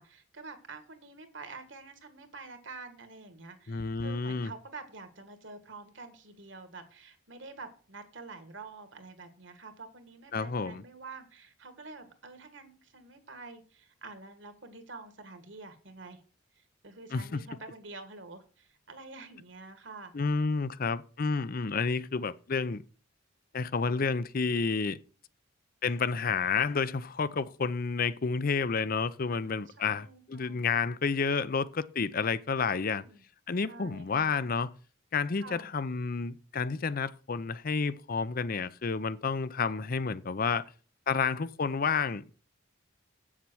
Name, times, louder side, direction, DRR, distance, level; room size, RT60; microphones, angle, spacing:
voice 1, 0.0-16.2 16.5-20.1 29.2-30.6 32.6-33.2 33.7-34.3 35.4-35.7, right 3 dB, 60° right, 1.7 m, -48 dB
voice 2, 3.7-4.5 10.3-10.8 17.1-17.4 20.1-22.8 23.5-25.0 25.8-33.0 33.5-34.7 35.1-40.6 41.1-42.3, left 5 dB, 45° left, 0.5 m, -30 dB
8.3 x 7.4 x 6.2 m
head